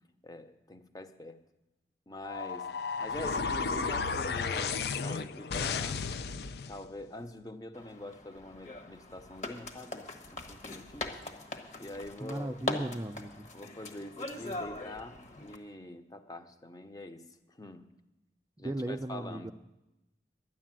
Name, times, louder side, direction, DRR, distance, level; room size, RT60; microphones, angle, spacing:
voice 1, 0.2-1.4 2.1-2.7 3.0-6.0 6.7-11.2 11.8-12.6 13.5-17.8 18.6-19.5, left 1 dB, 20° left, 8 dB, 0.7 m, -45 dB
sound 1, 2.2-6.8, left 5 dB, 65° left, 0.5 m, -33 dB
sound 2, 7.7-15.6, left 2 dB, 40° left, 1.3 m, -41 dB
voice 2, 12.2-13.5 18.6-19.5, right 1 dB, 15° right, 10 dB, 0.4 m, -36 dB
11.5 x 10.0 x 7.5 m, 0.97 s
head